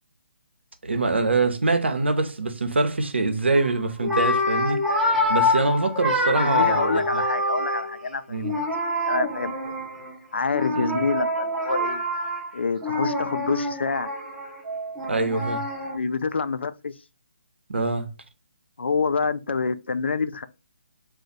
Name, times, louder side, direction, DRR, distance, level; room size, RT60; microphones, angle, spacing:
voice 1, 0.8-4.8 5.3-7.2 8.3-8.5 10.7-11.0 15.1-15.6 17.7-18.1, right 3 dB, 80° right, 0.6 m, -24 dB
sound 1, 3.5-3.7 4.0-8.0 8.4-10.1 10.5-16.0, left 1 dB, ahead, 0.7 m, -26 dB
voice 2, 6.4-8.5 9.1-9.7 10.3-12.0 12.5-14.1 15.9-16.9 18.8-20.5, left 4 dB, 75° left, 0.3 m, -27 dB
2.4 x 2.4 x 3.8 m
figure-of-eight pair, 145°, 6 cm